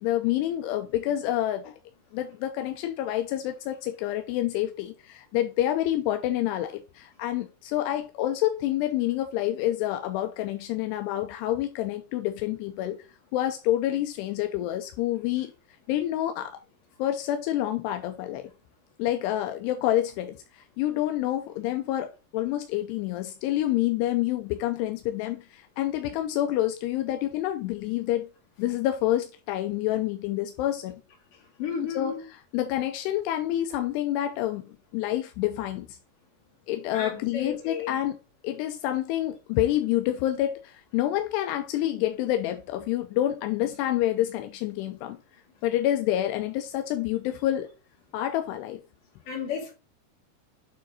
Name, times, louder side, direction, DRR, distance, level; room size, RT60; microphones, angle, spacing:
voice 1, 0.0-1.7 2.1-13.0 13.3-15.5 15.9-16.6 17.0-18.4 19.0-28.3 28.6-31.0 32.0-32.1 32.5-36.0 36.7-38.2 38.4-45.2 45.6-47.7 48.1-48.8, left 13 dB, 85° left, 2.7 m, -28 dB
voice 2, 31.6-32.2 36.9-38.0 49.3-49.7, left 6 dB, 55° left, 4.0 m, -33 dB
9.0 x 3.8 x 4.1 m
omnidirectional pair, 4.9 m